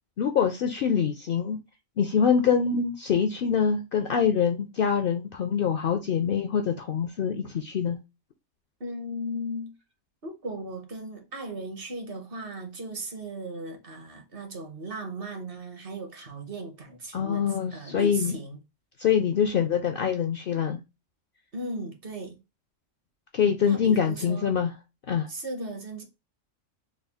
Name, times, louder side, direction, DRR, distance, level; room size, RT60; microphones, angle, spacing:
voice 1, 0.2-1.6 2.0-8.0 17.1-18.4 19.0-20.8 23.3-24.7 25.1-25.3, left 7 dB, 60° left, 0.6 m, -25 dB
voice 2, 8.8-9.7 10.2-18.6 21.5-22.4 23.6-24.6 25.3-26.0, right 1 dB, 50° right, 1.0 m, -37 dB
3.6 x 2.3 x 3.4 m
omnidirectional pair, 1.3 m